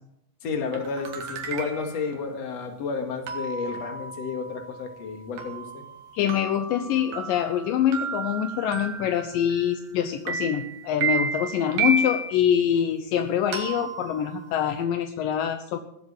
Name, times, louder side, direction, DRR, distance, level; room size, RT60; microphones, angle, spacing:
voice 1, 0.4-5.8, left 5 dB, 50° left, 4 dB, 2.8 m, -31 dB
sound 1, 0.7-2.1 3.3-9.9 10.3-12.4 13.5-14.8, right 4 dB, 80° right, 3.8 m, -33 dB
voice 2, 6.1-15.8, left 9 dB, 75° left, 7 dB, 2.4 m, -25 dB
19.0 x 7.8 x 7.4 m, 0.78 s
omnidirectional pair, 4.1 m